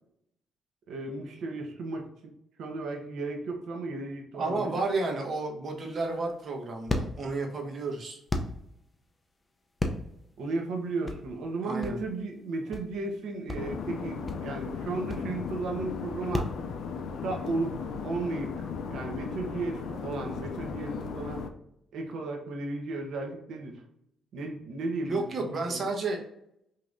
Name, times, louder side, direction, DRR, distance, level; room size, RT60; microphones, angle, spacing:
voice 1, 0.9-2.3 2.6-4.8 10.4-16.5 17.2-18.5 18.9-21.4 21.9-23.8 24.3-25.9, right 3 dB, 75° right, 2 dB, 0.9 m, -34 dB
voice 2, 4.3-8.2 11.6-12.0 25.0-26.2, right 3 dB, 45° right, 1 dB, 1.0 m, -31 dB
sound 1, 5.8-16.6, left 2 dB, 20° left, 0.6 m, -36 dB
sound 2, 13.5-21.5, left 5 dB, 70° left, 0.4 m, -36 dB
5.1 x 2.8 x 2.5 m, 0.79 s
cardioid pair, 90°, 0 cm